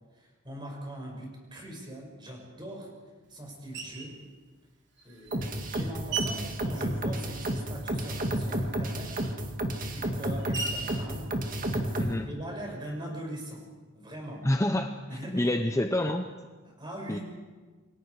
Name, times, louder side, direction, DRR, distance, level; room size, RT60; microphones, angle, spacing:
voice 1, 0.1-2.9 3.3-4.2 5.0-9.2 9.9-11.3 11.7-13.7 13.9-14.5 15.1-15.6 16.6-17.2, equal, 20° right, 0 dB, 6.1 m, -41 dB
Screech, 3.7-4.2 5.0-7.7 8.0-12.3, right 4 dB, 60° right, 3.1 m, -40 dB
sound 1, 5.3-12.1, right 1 dB, 40° right, 2.0 m, -31 dB
voice 2, 14.4-15.0 15.3-16.3 17.1-17.2, left 1 dB, 15° left, 6 dB, 0.7 m, -27 dB
28.5 x 23.5 x 4.8 m, 1.4 s
head